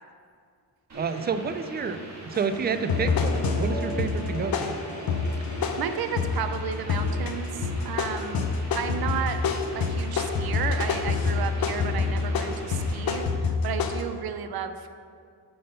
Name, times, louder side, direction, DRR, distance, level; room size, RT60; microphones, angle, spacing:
voice 1, 0.9-4.8, right 5 dB, 25° right, 10 dB, 0.3 m, -29 dB
sound 1, 0.9-13.2, right 1 dB, 40° right, 1.8 m, -41 dB
sound 2, 2.3-2.5 2.9-6.5 6.9-7.3 7.6-14.0, left 5 dB, 60° left, 0.7 m, -27 dB
sound 3, 2.7-8.7, left 1 dB, 15° left, 1.2 m, -41 dB
voice 2, 5.5-8.5 8.7-9.4 9.7-14.9, right 8 dB, 60° right, 9 dB, 0.7 m, -33 dB
7.6 x 5.6 x 5.5 m, 2.2 s
wide cardioid pair, 150°, 41 cm